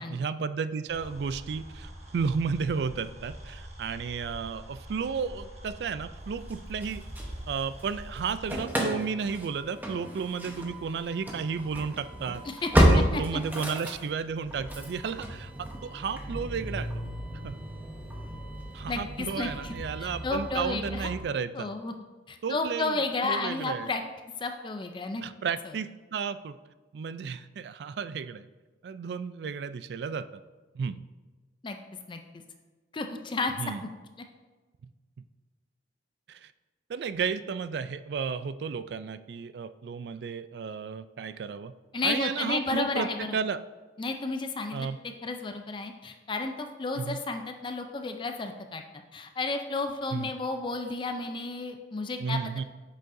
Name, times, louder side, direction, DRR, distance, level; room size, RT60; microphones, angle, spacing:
voice 1, 0.0-7.0 7.5-12.4 12.9-16.9 17.4-17.6 18.7-21.7 22.4-23.0 23.2-23.9 25.2-26.6 26.9-28.5 28.8-30.3 30.7-31.0 33.6-33.8 36.3-36.5 36.9-41.7 42.0-43.6 44.7-45.0 47.0-47.2 50.1-50.3 52.2-52.6, right 5 dB, 65° right, 13 dB, 0.3 m, -33 dB
sound 1, 0.9-8.6, right 1 dB, 40° right, 1.2 m, -45 dB
Engine starting / Slam, 6.5-7.9 8.2-21.2, equal, 10° right, 0.9 m, -31 dB
voice 2, 12.5-12.9 13.1-13.4 18.9-21.1 21.5-21.9 22.3-24.0 24.4-25.2 31.6-31.8 32.1-32.2 32.9-33.5 41.9-43.4 44.0-44.7 45.2-48.8 49.1-52.4, left 3 dB, 25° left, 6 dB, 0.4 m, -32 dB
8.2 x 6.6 x 2.6 m, 1.3 s
head